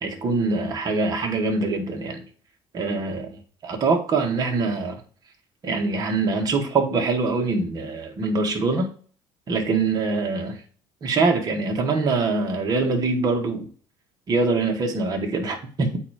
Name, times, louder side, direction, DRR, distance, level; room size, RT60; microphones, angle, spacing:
voice 1, 0.0-2.2 2.7-5.0 5.6-8.9 9.5-10.6 11.0-13.7 14.3-16.0, right 3 dB, 40° right, 1.8 m, -24 dB
8.2 x 2.9 x 5.0 m
cardioid pair, 105°, 10 cm